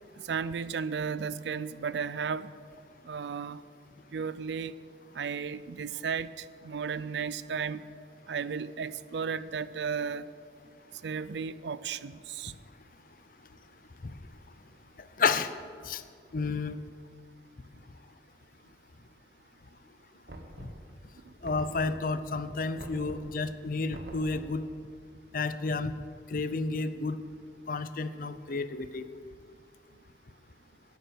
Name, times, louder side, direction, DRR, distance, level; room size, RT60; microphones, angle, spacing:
voice 1, 0.2-2.5 3.0-3.6 4.1-4.7 5.1-7.9 8.3-10.3 11.0-12.5, right 6 dB, 75° right, 17 dB, 0.4 m, -34 dB
voice 2, 15.2-15.5 15.8-16.0 16.3-16.8 20.6-20.7 21.4-24.6 25.3-25.9 26.3-27.2 27.7-29.1, left 4 dB, 50° left, 12 dB, 0.6 m, -31 dB
Knock, 20.3-21.0 21.4-22.2 22.8-23.4 23.9-24.6, right 1 dB, 60° right, 1.4 m, -44 dB
12.5 x 9.4 x 6.3 m, 2.1 s
head